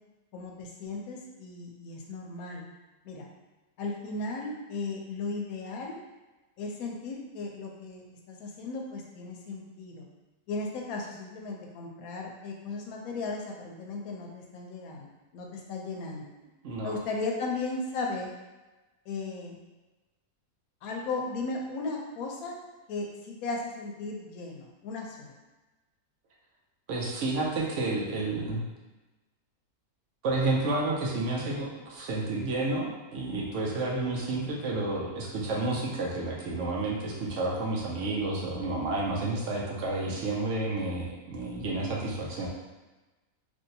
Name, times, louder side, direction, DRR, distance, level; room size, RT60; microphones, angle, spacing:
voice 1, 0.3-2.6 3.0-3.3 3.8-6.0 6.6-10.1 10.5-16.3 16.8-18.3 19.1-19.6 20.8-22.6 22.9-25.3, left 3 dB, 75° left, 0 dB, 1.0 m, -36 dB
voice 2, 16.6-16.9 26.9-28.6 30.2-42.5, right 2 dB, 65° right, -2 dB, 0.9 m, -30 dB
3.1 x 2.6 x 2.7 m, 1.1 s
omnidirectional pair, 1.6 m